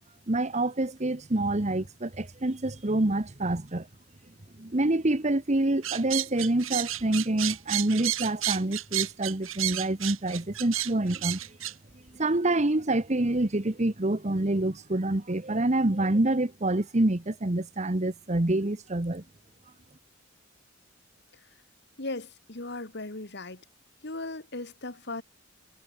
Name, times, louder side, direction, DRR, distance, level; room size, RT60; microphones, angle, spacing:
voice 1, 0.3-3.8 4.6-11.4 12.2-19.2, right 2 dB, 35° right, 1.2 m, -27 dB
sound 1, 5.8-11.7, right 13 dB, 85° right, 6.6 m, -31 dB
voice 2, 22.0-23.6 24.0-25.2, left 2 dB, 55° left, 2.6 m, -37 dB
head